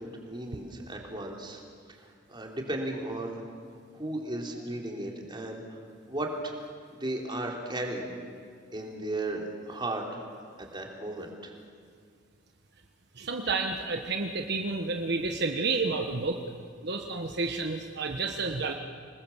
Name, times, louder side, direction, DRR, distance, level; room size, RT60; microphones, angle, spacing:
voice 1, 0.0-1.6 1.9-3.5 3.9-5.8 6.1-6.5 6.9-8.1 8.7-10.2 10.6-11.5, right 1 dB, 25° right, 0 dB, 3.4 m, -35 dB
voice 2, 13.2-16.4 16.8-18.7, right 3 dB, 60° right, 4 dB, 1.2 m, -30 dB
27.5 x 20.5 x 7.3 m, 2.2 s
head